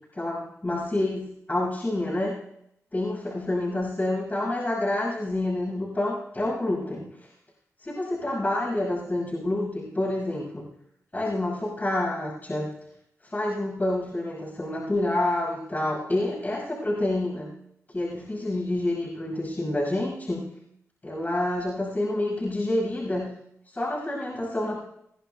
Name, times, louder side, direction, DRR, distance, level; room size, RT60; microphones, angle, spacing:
voice 1, 0.2-2.4 2.9-7.1 7.8-10.6 11.1-12.7 13.3-17.5 17.9-20.5 21.0-23.3 23.7-24.8, left 1 dB, 30° left, -3 dB, 6.2 m, -28 dB
22.0 x 15.5 x 2.4 m, 0.74 s
cardioid pair, 65°, 6 cm